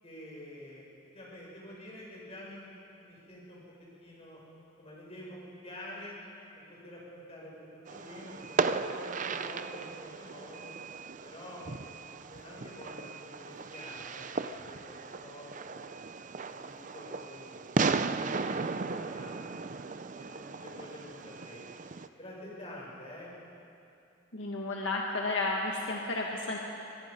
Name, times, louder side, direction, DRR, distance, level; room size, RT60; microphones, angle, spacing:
voice 1, 0.0-3.6 4.0-4.4 4.8-6.2 6.7-10.7 11.2-16.0 16.5-17.7 18.1-19.6 20.2-21.6 22.2-23.4, left 1 dB, 30° left, -4 dB, 6.4 m, -48 dB
Fireworks, 7.9-22.1, right 4 dB, 40° right, 0.5 m, -36 dB
voice 2, 24.3-26.6, left 2 dB, 65° left, -1 dB, 1.7 m, -32 dB
23.0 x 21.0 x 5.4 m, 2.7 s
head